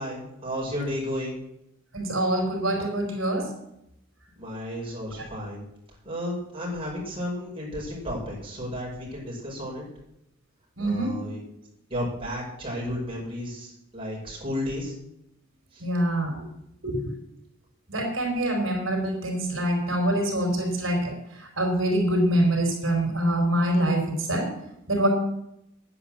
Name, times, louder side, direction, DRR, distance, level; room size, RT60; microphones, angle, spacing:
voice 1, 0.0-1.4 4.4-5.6 6.0-9.9 10.8-11.4 11.9-14.9 15.7-15.8, left 1 dB, 25° right, -3 dB, 5.5 m, -33 dB
voice 2, 1.9-3.5 10.8-11.1 15.8-16.4 16.8-17.2 17.9-24.5 24.9-25.1, right 1 dB, 70° right, 1 dB, 4.3 m, -25 dB
10.0 x 10.0 x 7.4 m, 0.79 s
head